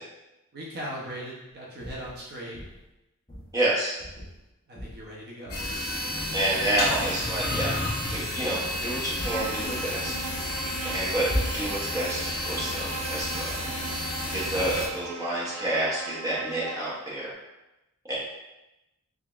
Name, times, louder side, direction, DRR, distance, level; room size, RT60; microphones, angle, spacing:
voice 1, 0.5-2.6 4.7-5.6 14.5-14.8, equal, 45° right, -5 dB, 0.8 m, -39 dB
sound 1, 1.8-2.2 2.5-2.9 3.3-3.5 4.0-4.4 4.8-5.1 5.5-5.8 6.1-6.6 6.9-7.1 7.7-8.0 8.4-8.8 9.2-9.5 11.3-11.9, equal, 20° left, 0.9 m, -36 dB
voice 2, 3.5-3.9 6.3-7.7 8.1-10.1 10.9-11.3 11.5-13.5 14.3-17.3 18.1-18.2, right 1 dB, 15° right, -7 dB, 0.9 m, -29 dB
sound 2, 5.5-14.9, left 1 dB, 50° left, 1.0 m, -31 dB
Bowed string instrument, 9.2-17.1, right 4 dB, 80° right, 0.4 m, -39 dB
3.6 x 3.5 x 2.5 m, 0.96 s
head